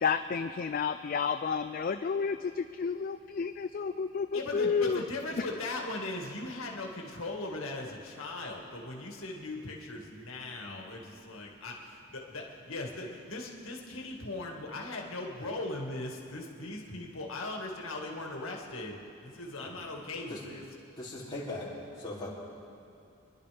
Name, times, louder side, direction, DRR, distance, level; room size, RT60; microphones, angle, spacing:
voice 1, 0.0-5.0, left 5 dB, 45° left, 9 dB, 0.3 m, -31 dB
voice 2, 4.3-20.6, left 2 dB, 90° left, 0 dB, 1.9 m, -39 dB
voice 3, 21.0-22.3, left 2 dB, 25° left, -7 dB, 3.1 m, -39 dB
25.5 x 11.0 x 3.4 m, 2.6 s
head